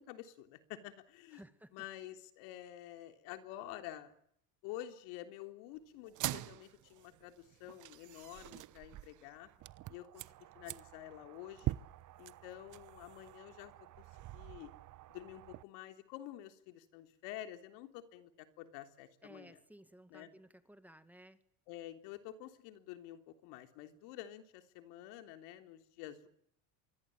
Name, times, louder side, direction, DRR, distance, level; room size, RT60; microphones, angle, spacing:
voice 1, 0.0-1.4 1.7-4.1 4.6-9.5 9.9-10.2 10.6-11.8 12.2-14.0 14.3-14.7 15.1-19.6 20.1-20.3 21.7-26.3, left 13 dB, 85° left, 7 dB, 3.5 m, -49 dB
voice 2, 1.3-1.7 19.2-21.4, right 1 dB, 5° right, 10 dB, 2.1 m, -57 dB
sound 1, 6.1-15.6, right 15 dB, 50° right, 1.0 m, -45 dB
26.0 x 23.5 x 8.8 m, 0.70 s
cardioid pair, 120°, 39 cm